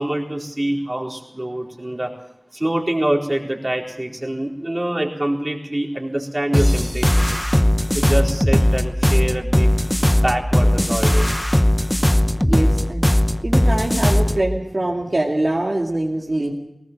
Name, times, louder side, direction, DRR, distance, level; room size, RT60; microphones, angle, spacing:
voice 1, 0.0-2.1 2.5-7.3 7.9-9.7 10.1-11.3, right 1 dB, 30° right, 0 dB, 4.3 m, -25 dB
sound 1, 6.5-14.4, left 1 dB, 15° left, 0.9 m, -18 dB
voice 2, 12.4-13.1 13.4-16.5, right 1 dB, 55° right, -2 dB, 2.4 m, -23 dB
19.0 x 19.0 x 7.6 m, 0.81 s
wide cardioid pair, 55°, 0 cm